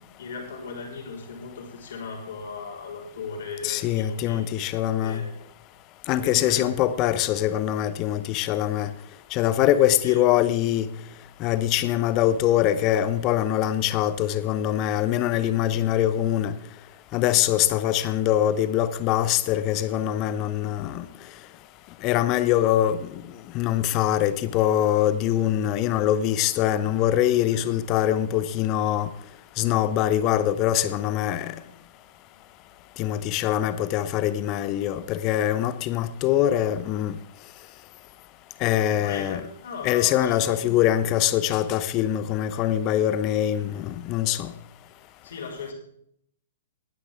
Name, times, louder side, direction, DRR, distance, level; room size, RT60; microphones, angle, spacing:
voice 1, 0.2-4.4 5.0-5.3 6.1-6.8 10.0-10.2 27.5-27.7 38.9-40.9 45.2-45.7, left 4 dB, 55° left, 4.0 m, -37 dB
voice 2, 3.6-5.2 6.1-8.9 9.3-10.9 11.4-16.5 17.1-21.1 22.0-23.2 23.5-29.1 29.6-31.5 33.0-37.2 38.6-39.4 39.8-44.5, left 12 dB, 30° left, 0.7 m, -23 dB
19.0 x 9.8 x 3.5 m
figure-of-eight pair, 115°, 0 cm